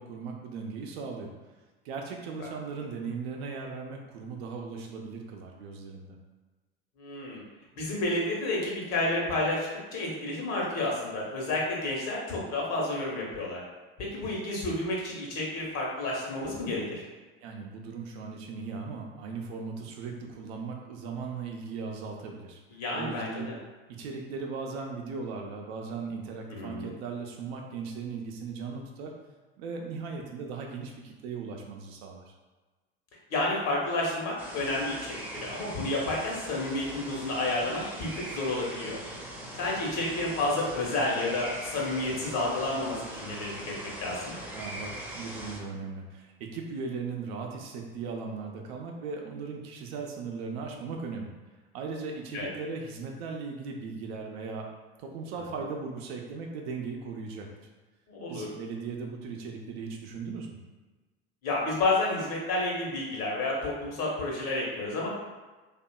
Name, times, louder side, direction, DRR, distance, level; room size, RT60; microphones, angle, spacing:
voice 1, 0.0-1.3 1.8-6.2 17.4-22.6 22.9-23.5 24.0-29.1 29.6-32.2 44.5-51.3 51.7-54.7 55.0-57.5 58.3-60.5, right 4 dB, 70° right, 1 dB, 0.6 m, -38 dB
voice 2, 7.0-7.4 7.7-13.6 14.0-17.0 22.7-23.6 26.5-26.9 33.3-39.0 39.6-43.7 44.0-44.3 52.3-52.5 58.1-58.5 61.4-65.1, left 2 dB, 55° left, -3 dB, 1.0 m, -30 dB
sound 1, 34.4-45.6, right 1 dB, 5° right, 0.7 m, -41 dB
2.8 x 2.4 x 2.2 m, 1.3 s
hypercardioid pair, 80°, 32 cm